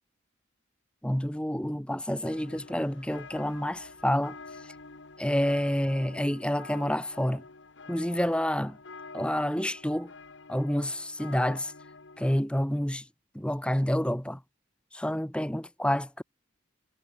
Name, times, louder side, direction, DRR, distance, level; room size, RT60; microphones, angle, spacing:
voice 1, 1.0-4.4 5.2-7.4 7.9-8.8 9.1-10.1 10.5-11.7 12.2-13.0 13.3-14.4 14.9-16.2, equal, 5° left, 1.0 m, -28 dB
sound 1, 2.2-12.4, left 4 dB, 65° left, 1.4 m, -48 dB
head